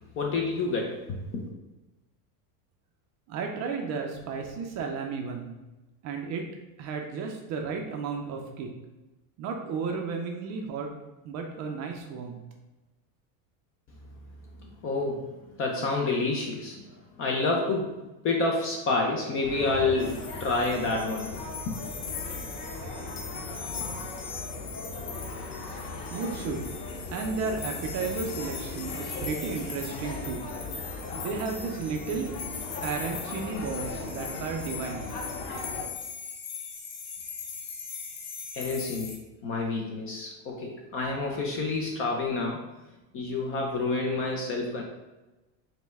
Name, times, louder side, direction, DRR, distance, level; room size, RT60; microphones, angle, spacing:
voice 1, 0.2-1.4 14.6-21.8 38.5-39.2 39.4-42.6 43.1-44.8, left 3 dB, 30° left, 0 dB, 0.4 m, -29 dB
voice 2, 3.3-5.6 6.0-6.5 6.8-8.7 9.4-10.9 11.2-12.4 26.1-26.7 27.1-30.4 31.1-32.3 32.8-35.1, right 5 dB, 35° right, 2 dB, 0.4 m, -33 dB
sound 1, 19.4-35.8, left 3 dB, 80° left, 1.0 m, -38 dB
sound 2, 20.0-39.2, left 6 dB, 50° left, 0.9 m, -40 dB
5.1 x 2.2 x 3.4 m, 1.1 s
supercardioid pair, 135°, 50 cm